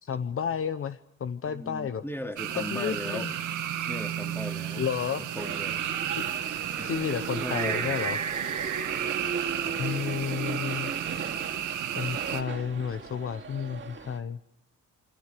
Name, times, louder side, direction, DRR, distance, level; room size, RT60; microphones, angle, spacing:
voice 1, 0.0-2.0 2.6-3.3 4.7-5.3 6.1-6.2 6.8-8.2 9.8-11.0 12.0-14.4, left 7 dB, 45° left, 11 dB, 1.0 m, -31 dB
voice 2, 1.5-3.4 3.9-4.8 5.3-5.9 6.8-6.9 7.4-8.0 9.0-10.2, left 1 dB, 5° left, 5 dB, 2.7 m, -38 dB
sound 1, 2.4-12.4, right 10 dB, 85° right, 2.2 m, -32 dB
sound 2, 5.4-14.2, right 5 dB, 40° right, 2.6 m, -37 dB
28.0 x 24.5 x 6.9 m, 0.83 s
cardioid pair, 90°, 30 cm